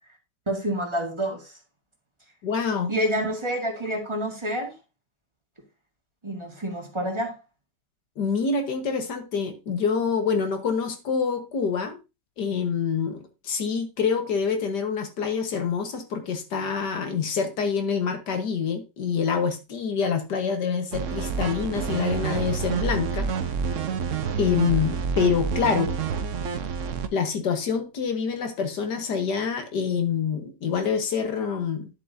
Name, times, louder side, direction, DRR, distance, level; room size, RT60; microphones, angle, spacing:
voice 1, 0.5-1.5 2.9-4.7 6.2-7.4, equal, 15° right, 1.6 m, -28 dB
voice 2, 2.4-2.9 8.2-12.0 12.4-23.3 24.4-25.9 27.1-31.9, left 6 dB, 70° left, 1.8 m, -26 dB
sound 1, 20.9-27.1, right 6 dB, 55° right, 1.0 m, -28 dB
10.5 x 7.6 x 2.7 m
omnidirectional pair, 1.9 m